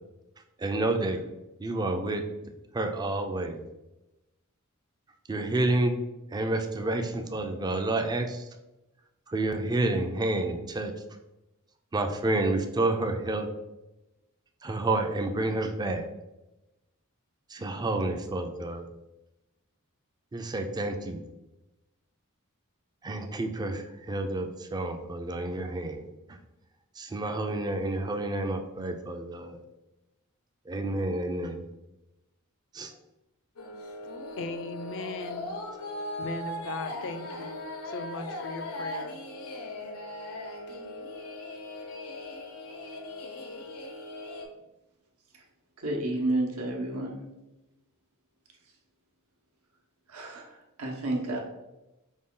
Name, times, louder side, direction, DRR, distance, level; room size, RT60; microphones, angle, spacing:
voice 1, 0.6-1.2 1.6-2.2 2.7-3.6 5.3-6.0 6.3-8.4 9.3-10.9 11.9-13.5 14.6-16.1 17.5-18.9 20.3-21.2 23.0-26.4 27.0-29.6 30.7-31.7 32.7-32.9, right 2 dB, 20° right, 6 dB, 0.3 m, -29 dB
sound 1, 33.6-44.5, left 1 dB, 90° left, 0.7 m, -39 dB
voice 2, 34.4-35.6 36.2-39.2, left 3 dB, 60° left, 9 dB, 0.4 m, -38 dB
voice 3, 45.8-47.2 50.1-51.4, right 2 dB, 85° right, 0 dB, 0.9 m, -31 dB
5.0 x 2.3 x 3.7 m, 0.99 s
head